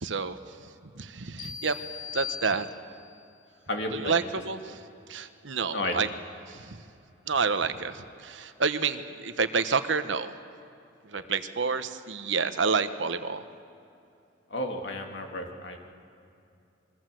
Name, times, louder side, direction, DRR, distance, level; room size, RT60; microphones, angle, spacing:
voice 1, 0.0-1.8 2.1-2.7 3.9-6.1 6.5-6.8 7.2-10.3 11.0-13.4, right 5 dB, 80° right, 10 dB, 1.1 m, -29 dB
sound 1, 1.4-3.2, left 8 dB, 85° left, 2.8 m, -39 dB
voice 2, 3.7-4.3 4.7-4.8 5.7-6.0 11.1-11.3 14.5-15.8, left 1 dB, 65° left, 3 dB, 2.7 m, -33 dB
27.0 x 22.5 x 7.8 m, 2.6 s
head